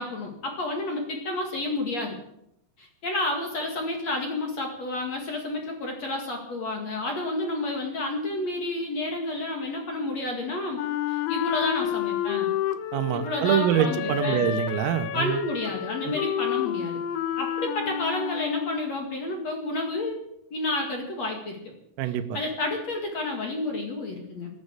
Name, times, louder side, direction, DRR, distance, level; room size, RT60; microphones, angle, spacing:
voice 1, 0.0-2.2 2.8-10.8 11.1-12.5 13.1-14.5 15.1-17.0 17.4-20.2 20.5-21.7 22.3-24.5, left 2 dB, 50° left, 2 dB, 2.1 m, -30 dB
Wind instrument woodwind instrument, 10.8-18.9, left 11 dB, 75° left, 3.1 m, -30 dB
voice 2, 12.9-15.4 16.0-16.1 22.0-22.4, right 10 dB, 80° right, 9 dB, 3.7 m, -25 dB
14.5 x 11.0 x 8.4 m, 0.78 s
omnidirectional pair, 6.0 m